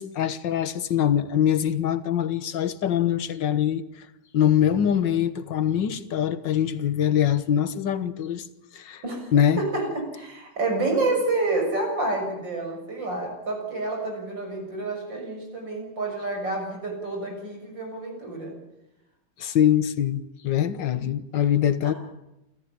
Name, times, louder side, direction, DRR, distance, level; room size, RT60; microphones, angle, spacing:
voice 1, 0.0-4.1 4.3-8.5 8.7-9.0 9.3-9.6 19.4-21.9, left 10 dB, 85° left, 1.9 m, -23 dB
voice 2, 9.6-18.6 21.0-21.1 21.8-21.9, right 2 dB, 90° right, 7.6 m, -29 dB
28.0 x 14.0 x 8.8 m
omnidirectional pair, 1.9 m